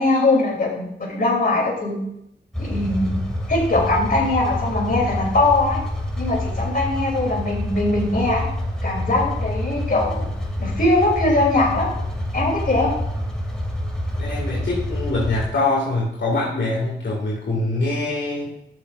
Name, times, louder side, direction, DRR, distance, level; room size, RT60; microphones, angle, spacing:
voice 1, 0.0-2.0 2.6-3.2 3.5-5.8 6.2-8.4 8.8-10.3 10.6-11.9 12.3-12.9, left 2 dB, 50° left, -1 dB, 3.0 m, -21 dB
sound 1, 2.5-15.5, left 1 dB, 5° left, 2.3 m, -27 dB
voice 2, 14.2-18.5, left 2 dB, 75° left, -4 dB, 2.2 m, -24 dB
13.5 x 6.7 x 2.5 m, 0.78 s
cardioid pair, 70°, 19 cm